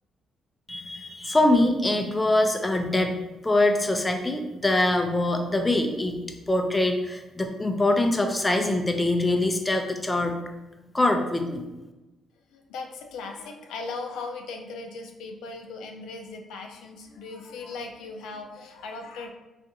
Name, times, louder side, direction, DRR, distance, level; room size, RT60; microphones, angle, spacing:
voice 1, 0.7-3.1 3.4-6.2 6.5-10.4 10.9-11.6, left 1 dB, 15° left, 4 dB, 0.4 m, -23 dB
voice 2, 12.5-19.3, left 3 dB, 85° left, 3 dB, 0.4 m, -38 dB
3.5 x 2.4 x 2.7 m, 1.0 s
cardioid pair, 90°, 0 cm